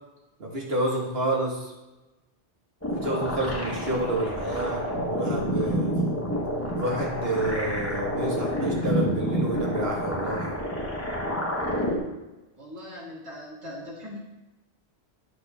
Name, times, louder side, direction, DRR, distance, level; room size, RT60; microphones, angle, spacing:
voice 1, 0.4-1.7 2.9-6.1 6.7-10.6, right 1 dB, 65° right, -2 dB, 1.8 m, -29 dB
sound 1, 2.8-12.0, equal, 15° left, 1.0 m, -28 dB
sound 2, 5.0-10.0, left 13 dB, 70° left, 0.8 m, -41 dB
voice 2, 12.6-14.2, left 1 dB, 30° right, -8 dB, 1.7 m, -40 dB
10.5 x 4.2 x 3.4 m, 1.1 s
omnidirectional pair, 1.1 m